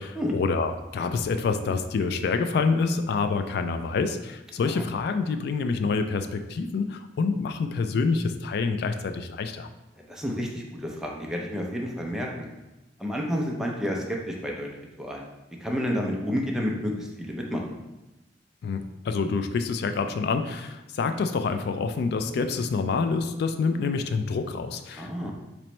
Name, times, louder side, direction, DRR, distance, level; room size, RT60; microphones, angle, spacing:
voice 1, 0.0-9.7 18.6-25.3, left 4 dB, 60° left, 8 dB, 0.3 m, -27 dB
voice 2, 10.1-12.5 13.0-15.2 15.6-17.7 24.9-25.3, equal, 5° right, -1 dB, 0.5 m, -30 dB
3.0 x 3.0 x 4.3 m, 1.0 s
head